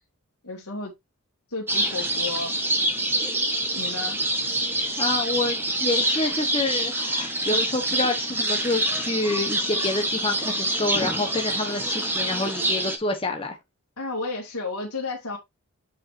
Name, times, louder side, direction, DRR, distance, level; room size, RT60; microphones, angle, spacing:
voice 1, 0.4-0.9 1.5-2.5 3.7-4.2 14.0-15.4, left 3 dB, 70° left, 2.4 m, -32 dB
sound 1, 1.7-13.0, right 1 dB, 10° right, 1.4 m, -26 dB
voice 2, 5.0-13.6, left 2 dB, 25° left, 1.3 m, -27 dB
7.7 x 5.9 x 2.8 m
head